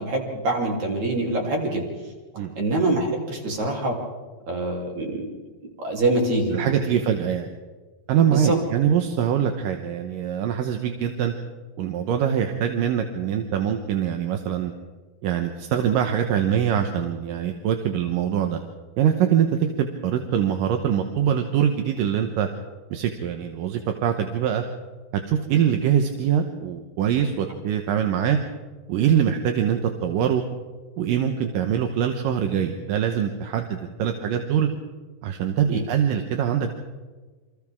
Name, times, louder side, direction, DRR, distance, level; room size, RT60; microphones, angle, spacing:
voice 1, 0.0-1.8 2.6-4.0 4.5-5.3 5.8-6.7 8.3-8.6 35.7-35.8, right 2 dB, 50° right, 0 dB, 4.4 m, -24 dB
voice 2, 6.5-7.5 8.1-11.3 11.8-14.7 15.2-18.6 19.0-22.5 22.9-24.6 25.3-28.4 28.9-30.4 31.0-34.7 35.2-36.7, right 9 dB, 70° right, 5 dB, 2.5 m, -23 dB
28.5 x 25.5 x 3.6 m, 1.4 s
omnidirectional pair, 4.4 m